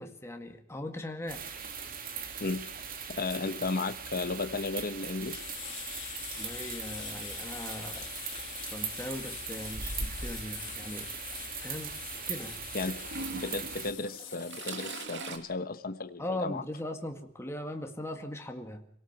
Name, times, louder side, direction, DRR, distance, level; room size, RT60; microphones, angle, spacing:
voice 1, 0.0-1.4 6.4-8.1 8.7-11.1 11.6-12.0 12.3-12.6 16.2-18.9, left 1 dB, 15° left, 4 dB, 1.9 m, -39 dB
sound 1, 1.3-13.9, right 7 dB, 45° right, 2.5 m, -40 dB
voice 2, 3.1-5.4 12.7-16.6, left 3 dB, 45° left, 10 dB, 1.1 m, -34 dB
sound 2, 5.2-15.1, left 13 dB, 65° left, 2.9 m, -44 dB
Toilet flush / Trickle dribble, 9.6-10.5 11.6-11.7 13.0-15.4, right 2 dB, 60° right, 2.7 m, -40 dB
26.5 x 18.0 x 5.9 m, 0.66 s
head